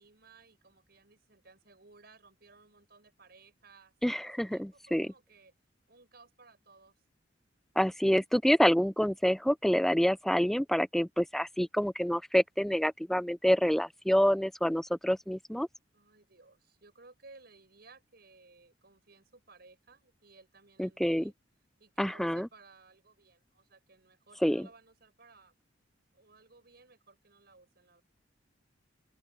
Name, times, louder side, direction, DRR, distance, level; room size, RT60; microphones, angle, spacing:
voice 1, 0.0-5.5 5.9-6.9 15.9-21.3 21.8-25.5 26.1-28.0, right 3 dB, 60° right, 5.3 m, -59 dB
voice 2, 4.0-5.1 7.8-15.7 20.8-21.3 22.0-22.5 24.4-24.7, equal, ahead, 0.4 m, -27 dB
open air
head